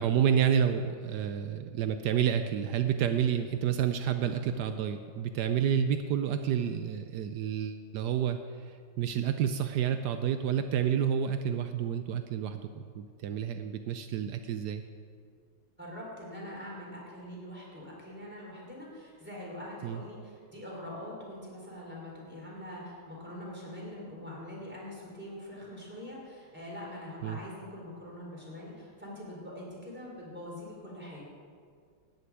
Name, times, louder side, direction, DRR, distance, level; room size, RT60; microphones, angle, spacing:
voice 1, 0.0-8.4 9.0-12.7 12.9-14.8 19.8-20.0 27.2-27.4, right 8 dB, 80° right, 8 dB, 0.9 m, -29 dB
voice 2, 15.8-31.3, left 1 dB, 5° right, -4 dB, 4.0 m, -43 dB
14.0 x 6.8 x 9.5 m, 2.1 s
omnidirectional pair, 2.4 m